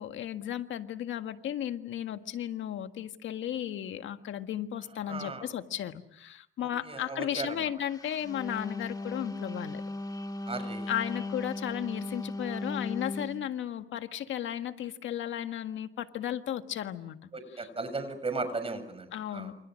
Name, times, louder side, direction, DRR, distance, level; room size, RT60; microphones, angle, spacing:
voice 1, 0.0-9.8 10.9-17.7 19.1-19.5, left 10 dB, 75° left, 8 dB, 1.7 m, -35 dB
voice 2, 5.0-5.5 6.6-7.7 10.5-10.9 17.3-19.5, right 3 dB, 30° right, 10 dB, 6.8 m, -36 dB
Wind instrument woodwind instrument, 8.1-13.4, left 2 dB, 20° left, 1.6 m, -37 dB
29.0 x 28.5 x 6.4 m, 0.74 s
cardioid pair, 90°, 20 cm